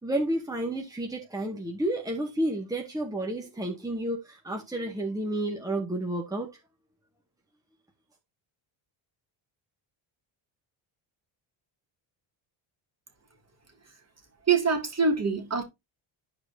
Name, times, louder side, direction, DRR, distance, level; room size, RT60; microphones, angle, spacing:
voice 1, 0.0-6.6, right 1 dB, 5° right, 2.1 m, -31 dB
voice 2, 14.5-15.6, right 5 dB, 30° right, 2.6 m, -24 dB
11.5 x 5.0 x 2.8 m
cardioid pair, 105°, 50 cm